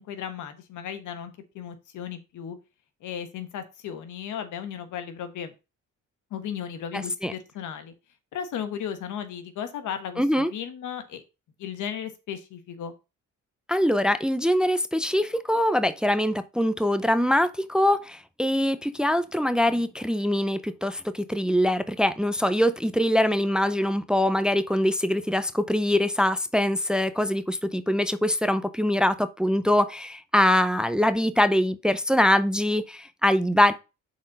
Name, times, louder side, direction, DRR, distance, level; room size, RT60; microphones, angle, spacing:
voice 1, 0.0-2.6 3.0-5.5 6.3-7.9 8.3-10.2 10.5-11.2 11.6-12.9, left 8 dB, 80° left, 1.4 m, -35 dB
voice 2, 6.9-7.3 10.2-10.5 13.7-33.7, left 1 dB, 5° right, 0.6 m, -23 dB
6.3 x 4.3 x 5.3 m
cardioid pair, 90°, 30 cm